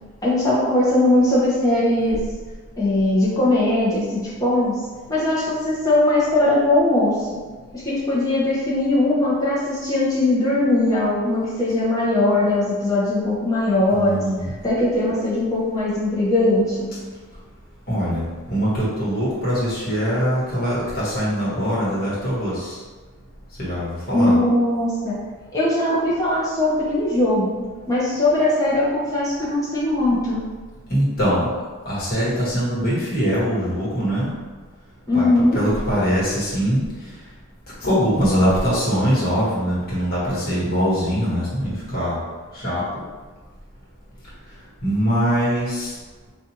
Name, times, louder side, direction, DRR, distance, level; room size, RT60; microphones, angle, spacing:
voice 1, 0.2-2.2 2.8-4.8 5.1-7.4 7.8-14.2 14.6-16.9 24.1-25.2 25.5-30.4 35.1-35.6, left 1 dB, 15° left, -8 dB, 0.9 m, -20 dB
voice 2, 13.9-14.5 17.9-22.8 23.6-24.3 30.9-31.5 31.8-34.3 35.1-35.3 35.5-36.8 37.8-42.2 42.5-43.0 44.8-45.9, equal, 45° left, -8 dB, 1.3 m, -22 dB
4.1 x 2.5 x 2.9 m, 1.3 s
head